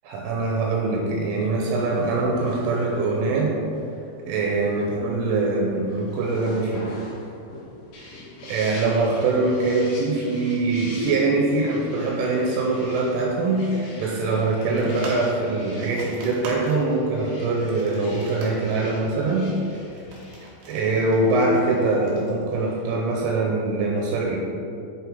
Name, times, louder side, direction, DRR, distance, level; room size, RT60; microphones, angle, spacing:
voice 1, 0.0-3.5 4.3-6.9 8.5-19.5 20.7-24.4, right 3 dB, 90° right, -2 dB, 3.3 m, -23 dB
sound 1, 1.7-9.5, left 1 dB, 65° left, 3.1 m, -43 dB
sound 2, 7.9-22.0, left 2 dB, 90° left, 4.0 m, -45 dB
sound 3, 14.8-23.0, right 2 dB, 65° right, 2.9 m, -42 dB
8.3 x 5.8 x 3.8 m, 2.6 s
omnidirectional pair, 5.6 m